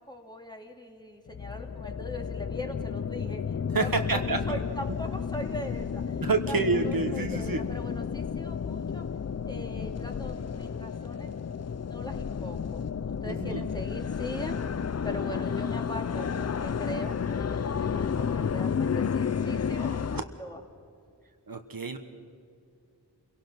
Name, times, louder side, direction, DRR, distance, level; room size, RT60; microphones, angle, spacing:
voice 1, 0.0-9.1 9.4-11.3 11.6-20.6, left 1 dB, 10° left, 2 dB, 2.4 m, -41 dB
sound 1, 1.3-20.2, left 6 dB, 40° left, 0.5 m, -32 dB
voice 2, 3.7-4.6 6.2-7.6 13.2-13.7 20.1-20.2 21.5-22.0, right 4 dB, 60° right, 6 dB, 1.4 m, -28 dB
27.5 x 17.5 x 6.1 m, 2.5 s
wide cardioid pair, 75°, 39 cm